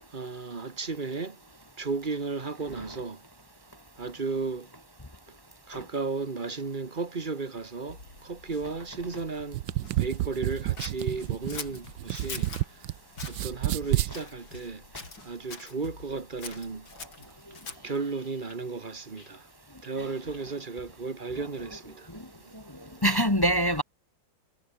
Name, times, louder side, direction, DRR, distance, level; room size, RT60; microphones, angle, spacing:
voice 1, 0.1-1.4 1.8-3.2 4.0-4.7 5.7-9.6 10.0-12.5 13.3-14.8 15.2-16.9 17.8-19.4 19.8-22.1 22.4-22.5, right 4 dB, 30° right, 1.4 m, -34 dB
sound 1, 7.9-19.5 19.8-20.5, left 2 dB, 65° left, 6.8 m, -52 dB
sound 2, 9.4-12.9 13.2-14.1, right 15 dB, 75° right, 1.3 m, -29 dB
Scissors, 10.8-12.7 13.1-13.5 14.1-14.7 14.9-15.7 16.4-18.0, left 4 dB, 80° left, 4.7 m, -42 dB
voice 2, 23.0-23.8, equal, 15° left, 1.2 m, -24 dB
omnidirectional pair, 2.1 m